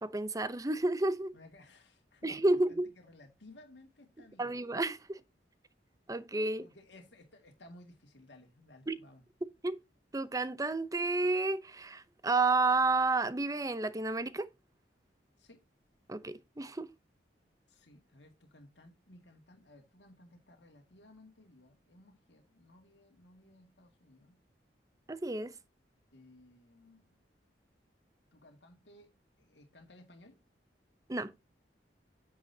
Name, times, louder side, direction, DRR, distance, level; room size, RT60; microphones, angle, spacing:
voice 1, 0.0-1.3 2.2-2.9 4.4-5.2 6.1-6.6 8.9-9.0 9.6-9.8 10.1-14.5 16.1-16.9 25.1-25.5 31.1-31.3, right 3 dB, 20° right, 0.6 m, -31 dB
voice 2, 1.3-4.6 6.6-9.2 15.4-15.6 17.7-24.4 26.1-27.2 28.3-29.1 29.4-30.4, left 1 dB, 80° left, 2.0 m, -58 dB
9.0 x 7.7 x 2.7 m
head